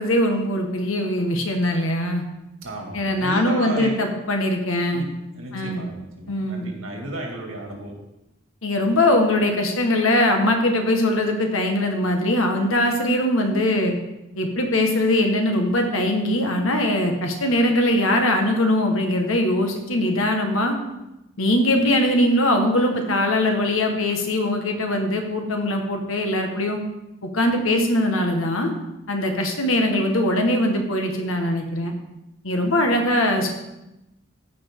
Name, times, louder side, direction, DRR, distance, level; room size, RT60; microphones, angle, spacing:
voice 1, 0.0-2.2 2.9-5.0 5.5-5.8 6.3-6.7 8.6-13.9 14.4-20.7 21.4-26.8 27.3-28.7 29.1-31.9 32.4-33.5, left 1 dB, 90° left, 3 dB, 1.5 m, -21 dB
voice 2, 2.6-4.0 4.9-5.1 5.4-7.9, right 1 dB, 85° right, 0 dB, 2.2 m, -33 dB
14.5 x 5.3 x 3.7 m, 0.93 s
head